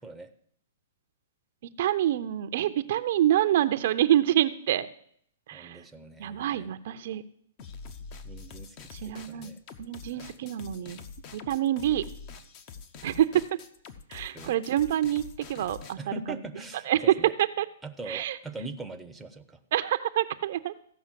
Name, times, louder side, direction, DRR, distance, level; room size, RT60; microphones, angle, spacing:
voice 1, 1.8-4.9 5.5-5.8 6.2-7.2 8.9-9.5 9.8-11.0 11.3-12.0 13.0-13.4 14.1-15.2 15.5-16.0 16.9-17.7 18.1-18.4 19.7-20.7, right 12 dB, 55° right, 11 dB, 0.6 m, -26 dB
voice 2, 5.5-6.7 8.2-9.6 10.1-10.4 14.3-14.6 16.0-17.3 17.8-19.6, right 2 dB, 5° right, 5 dB, 0.7 m, -42 dB
sound 1, 7.6-15.9, left 5 dB, 35° left, 0.8 m, -45 dB
15.0 x 5.6 x 7.5 m, 0.66 s
hypercardioid pair, 150°, 0 cm